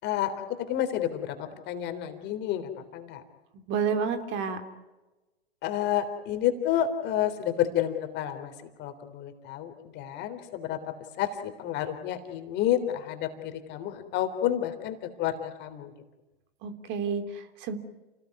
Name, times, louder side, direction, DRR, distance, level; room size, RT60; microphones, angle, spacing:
voice 1, 0.0-3.2 5.6-8.5 8.8-15.9, left 11 dB, 35° left, 7 dB, 3.6 m, -30 dB
voice 2, 3.7-4.6 16.6-17.7, right 6 dB, 35° right, 8 dB, 3.2 m, -30 dB
30.0 x 19.5 x 9.6 m, 1.1 s
hypercardioid pair, 115°, 31 cm